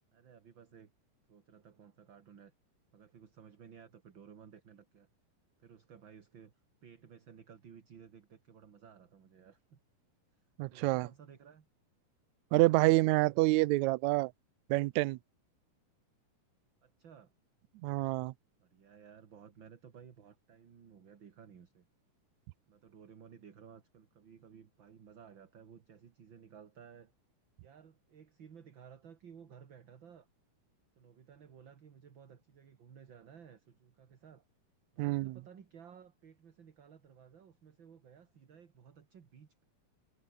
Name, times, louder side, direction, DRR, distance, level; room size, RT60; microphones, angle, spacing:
voice 1, 0.1-0.9 1.3-2.5 2.9-5.1 5.6-6.5 6.8-9.8 10.3-11.7 16.8-17.3 18.6-21.9 22.7-27.1 27.6-30.3 31.0-34.5 34.9-39.6, right 7 dB, 40° right, 2.2 m, -56 dB
voice 2, 10.6-11.1 12.5-14.3 14.7-15.2 17.8-18.3 35.0-35.4, right 20 dB, 80° right, 1.7 m, -27 dB
omnidirectional pair, 3.8 m